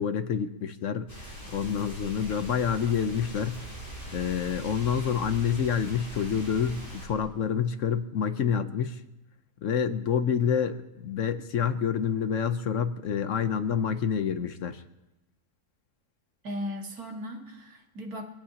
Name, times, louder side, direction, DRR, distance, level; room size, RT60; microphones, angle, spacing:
voice 1, 0.0-3.6 4.1-9.0 9.6-14.8, left 7 dB, 65° left, 10 dB, 1.1 m, -28 dB
sound 1, 1.1-7.1, right 1 dB, 35° left, 8.1 m, -41 dB
voice 2, 16.4-18.2, equal, 85° right, 1 dB, 2.4 m, -37 dB
24.0 x 17.5 x 2.9 m, 0.95 s
omnidirectional pair, 1.5 m